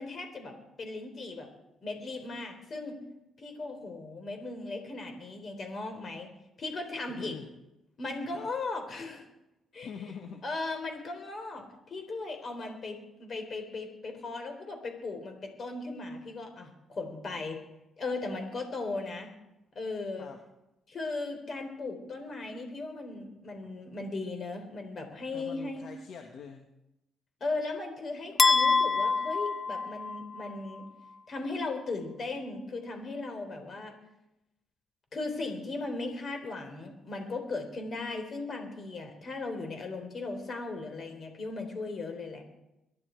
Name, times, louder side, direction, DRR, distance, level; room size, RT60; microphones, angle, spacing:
voice 1, 0.0-1.5 1.8-3.0 3.4-6.3 6.6-7.4 8.0-9.3 9.7-9.9 10.4-17.6 18.0-19.3 19.7-20.3 20.9-25.9 27.4-30.9 31.3-34.0 35.1-42.4, left 3 dB, 45° left, 5 dB, 3.9 m, -37 dB
voice 2, 7.1-7.5 8.3-8.5 9.8-10.4 20.2-20.4 25.3-26.7, left 6 dB, 65° left, 4 dB, 1.4 m, -44 dB
sound 1, 28.4-30.5, left 4 dB, 30° left, 0.6 m, -26 dB
22.5 x 11.5 x 4.6 m, 0.92 s
cardioid pair, 90°, 0 cm